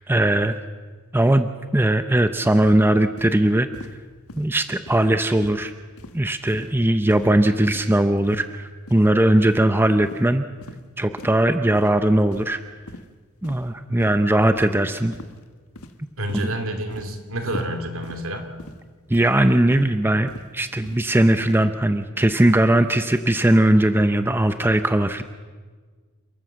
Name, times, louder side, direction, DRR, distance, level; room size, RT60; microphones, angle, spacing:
voice 1, 0.1-0.6 1.1-3.7 4.4-5.7 6.1-10.4 11.0-12.6 13.4-15.1 16.4-16.5 19.1-25.2, right 1 dB, 10° right, 9 dB, 0.6 m, -19 dB
sound 1, 2.6-2.8 3.2-3.4 3.7-4.0 4.3-4.5 4.9-5.1 5.4-5.6 6.0-6.2 6.5-6.8 7.1-7.3 7.7-7.9 8.2-8.5 8.9-9.1 9.5-9.6 10.0-10.2 10.6-10.8 11.2-11.4 11.7-11.9 12.3-12.6 12.9-13.1 13.4-13.7 14.0-14.2 14.6-14.7 15.1-15.4 15.8-16.0 16.3-16.5 16.9-17.1 17.5-17.7 18.0-18.2 18.6-18.8 19.1-19.4 19.7-19.9 20.3-20.5 20.8-21.0 21.4-21.6, left 2 dB, 70° left, 1.4 m, -41 dB
voice 2, 16.2-18.5, right 1 dB, 65° right, 6 dB, 2.8 m, -28 dB
28.5 x 13.0 x 7.5 m, 1.5 s
head